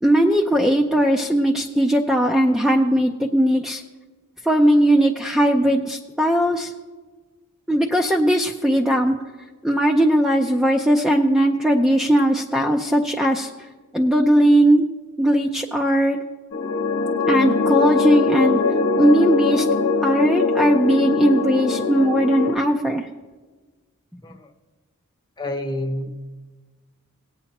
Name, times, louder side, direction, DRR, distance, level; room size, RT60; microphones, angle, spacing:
voice 1, 0.0-3.8 4.4-6.7 7.7-9.2 9.6-13.5 13.9-14.8 15.2-16.2 17.3-18.6 19.0-19.7 20.0-23.1, right 1 dB, 5° right, 1 dB, 0.4 m, -18 dB
sound 1, 16.5-22.6, left 4 dB, 65° left, 1.0 m, -22 dB
voice 2, 25.4-26.1, left 1 dB, 20° left, 4 dB, 0.8 m, -28 dB
18.5 x 8.4 x 2.9 m, 1.3 s
head